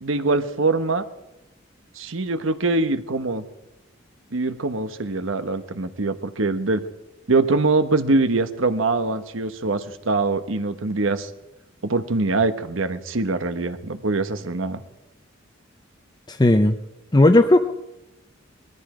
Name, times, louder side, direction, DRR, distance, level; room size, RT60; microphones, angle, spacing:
voice 1, 0.0-1.0 2.0-3.4 4.3-6.8 7.3-11.3 11.8-14.8, right 3 dB, 80° right, 10 dB, 1.1 m, -23 dB
voice 2, 16.3-16.8 17.1-17.6, left 1 dB, 20° left, 5 dB, 0.7 m, -15 dB
20.0 x 13.5 x 5.0 m, 0.90 s
head